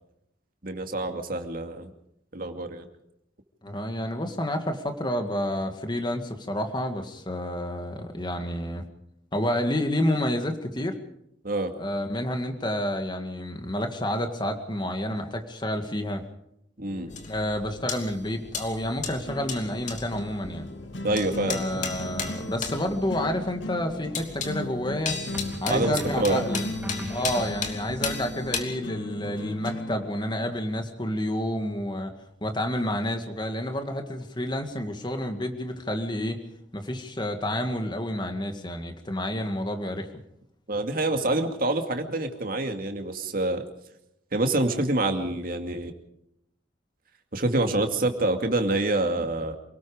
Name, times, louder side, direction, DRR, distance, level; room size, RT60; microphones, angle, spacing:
voice 1, 0.6-1.9 2.3-2.9 11.4-11.7 16.8-17.1 21.0-21.9 25.7-26.4 40.7-43.6 44.3-45.9 47.3-49.6, right 2 dB, 50° right, 5 dB, 2.5 m, -26 dB
voice 2, 3.6-8.8 9.3-11.0 11.8-16.2 17.1-20.7 21.4-25.2 25.6-26.6 27.1-32.1 32.4-36.4 36.7-40.1, left 1 dB, 25° left, 6 dB, 2.1 m, -29 dB
sound 1, 16.9-30.8, left 1 dB, 85° left, 2.0 m, -37 dB
sound 2, 17.1-28.6, left 5 dB, 45° left, 3.0 m, -36 dB
sound 3, 25.3-28.0, equal, 10° right, 2.5 m, -38 dB
28.0 x 19.0 x 5.1 m, 0.77 s
head